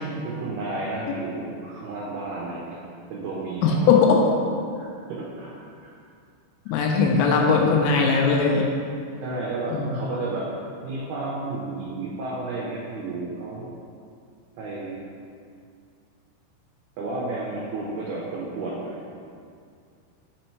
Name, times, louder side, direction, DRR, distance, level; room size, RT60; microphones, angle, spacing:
voice 1, 0.0-2.8 3.1-4.3 4.8-5.9 6.7-6.8 9.2-10.5 10.8-13.7 14.6-15.0 17.0-19.2, right 2 dB, 80° right, -5 dB, 2.3 m, -32 dB
voice 2, 3.6-4.2 6.7-8.7 9.7-10.0, left 5 dB, 85° left, 1 dB, 2.7 m, -19 dB
6.1 x 4.3 x 4.5 m, 2.3 s
omnidirectional pair, 5.3 m